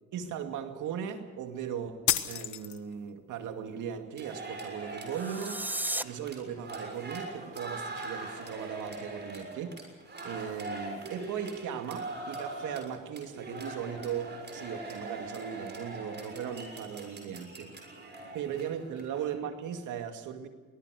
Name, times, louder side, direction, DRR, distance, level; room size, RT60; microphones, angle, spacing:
voice 1, 0.1-5.6 6.0-9.8 10.2-17.7 18.3-20.5, right 8 dB, 85° right, 6 dB, 2.4 m, -38 dB
sound 1, 2.1-3.1, left 12 dB, 80° left, 1.4 m, -30 dB
sound 2, 4.2-19.4, right 2 dB, 35° right, 6.7 m, -42 dB
sound 3, 5.1-6.0, right 1 dB, 5° right, 0.8 m, -34 dB
24.0 x 19.0 x 6.5 m, 1.3 s
cardioid pair, 90°, 30 cm